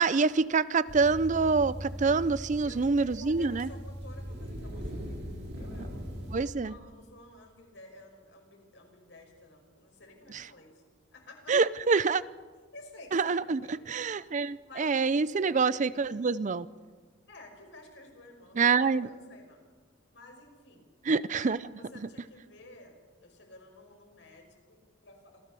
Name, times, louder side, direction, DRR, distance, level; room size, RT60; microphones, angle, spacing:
voice 1, 0.0-3.7 6.3-6.7 10.3-10.4 11.5-12.2 13.1-16.7 18.6-19.1 21.1-21.6, right 4 dB, 40° right, 17 dB, 0.5 m, -26 dB
sound 1, 0.9-6.4, equal, 60° right, 3.6 m, -40 dB
voice 2, 2.6-10.8 11.1-11.6 12.7-13.8 14.6-15.1 17.3-19.6 20.1-20.9 21.4-23.0 23.2-25.5, left 2 dB, 75° left, 2 dB, 5.5 m, -52 dB
27.0 x 15.5 x 6.8 m, 1.4 s
head